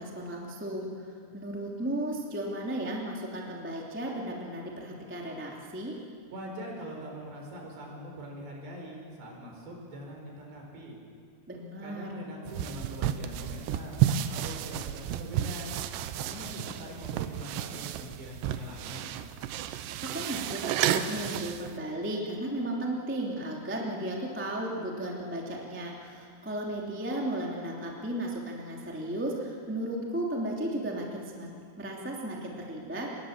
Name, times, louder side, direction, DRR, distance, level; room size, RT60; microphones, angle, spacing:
voice 1, 0.0-6.0 11.5-12.2 20.0-31.5 31.8-33.1, right 1 dB, 5° right, -2 dB, 1.5 m, -35 dB
voice 2, 6.3-11.0 11.8-15.7 16.2-19.1, equal, 60° right, 1 dB, 6.5 m, -42 dB
sound 1, 12.5-21.8, right 11 dB, 80° right, 2.6 m, -32 dB
26.5 x 21.0 x 7.5 m, 2.2 s
omnidirectional pair, 5.7 m